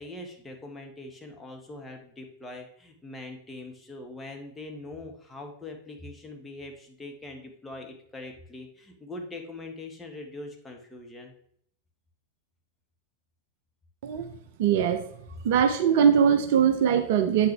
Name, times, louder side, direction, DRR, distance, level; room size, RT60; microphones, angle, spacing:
voice 1, 0.0-11.3, left 2 dB, 10° left, 2 dB, 1.4 m, -42 dB
voice 2, 14.6-15.1 15.4-17.5, right 8 dB, 50° right, 8 dB, 0.6 m, -21 dB
8.2 x 5.9 x 3.3 m, 0.67 s
figure-of-eight pair, 90°, 0 cm